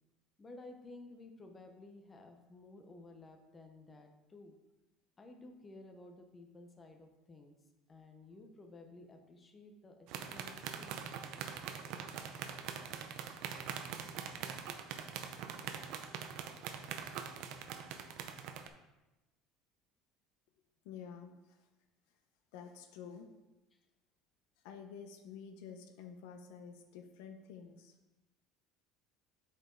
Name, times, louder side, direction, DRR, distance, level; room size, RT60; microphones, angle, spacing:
voice 1, 0.4-4.5 5.2-7.6 7.9-11.0 23.1-23.2 23.7-23.8, left 2 dB, 20° left, 4 dB, 0.7 m, -54 dB
sound 1, 10.1-18.7, right 7 dB, 65° right, 0.6 m, -43 dB
voice 2, 20.8-21.6 22.5-23.3 24.6-27.9, left 7 dB, 80° left, 6 dB, 0.7 m, -50 dB
7.8 x 4.5 x 3.8 m, 1.0 s
cardioid pair, 145°, 0 cm